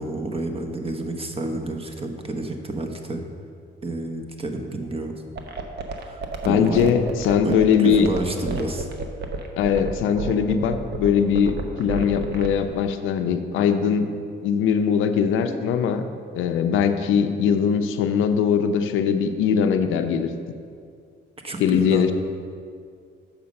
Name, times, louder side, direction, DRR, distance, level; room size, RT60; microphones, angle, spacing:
voice 1, 0.0-3.2 3.8-5.1 6.0-6.9 7.4-8.9 21.4-22.1, right 2 dB, 30° right, 4 dB, 0.9 m, -29 dB
sound 1, 5.4-12.7, right 3 dB, 60° right, 0.9 m, -30 dB
voice 2, 6.4-8.1 9.6-14.1 14.4-16.0 16.3-20.3 21.6-22.1, left 7 dB, 85° left, 8 dB, 0.6 m, -21 dB
7.0 x 5.0 x 6.4 m, 2.3 s
cardioid pair, 90°, 20 cm